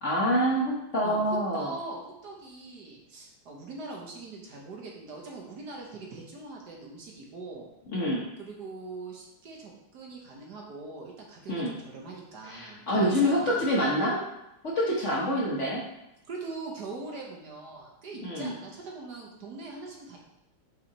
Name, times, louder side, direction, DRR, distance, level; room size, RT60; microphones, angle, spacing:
voice 1, 0.0-1.7 7.9-8.3 11.5-11.7 12.5-14.2 14.6-15.8 18.2-18.5, equal, 45° left, -4 dB, 1.2 m, -26 dB
voice 2, 1.5-7.7 8.4-13.6 16.3-20.2, right 3 dB, 60° right, -1 dB, 1.5 m, -42 dB
5.6 x 4.8 x 4.1 m, 0.86 s
omnidirectional pair, 2.1 m